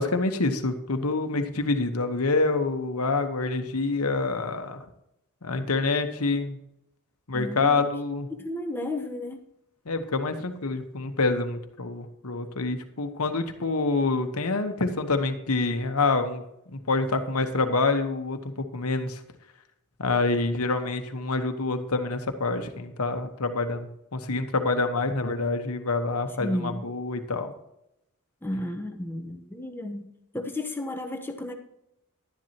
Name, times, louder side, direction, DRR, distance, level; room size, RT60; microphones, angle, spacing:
voice 1, 0.0-4.8 5.4-6.6 7.3-8.3 9.9-16.4 16.7-19.2 20.0-27.5, left 3 dB, 75° left, 7 dB, 1.2 m, -27 dB
voice 2, 7.3-7.8 8.3-9.4 26.4-26.9 28.4-30.1 30.3-31.5, left 1 dB, 10° left, 4 dB, 1.0 m, -33 dB
12.0 x 10.5 x 2.9 m, 0.81 s
head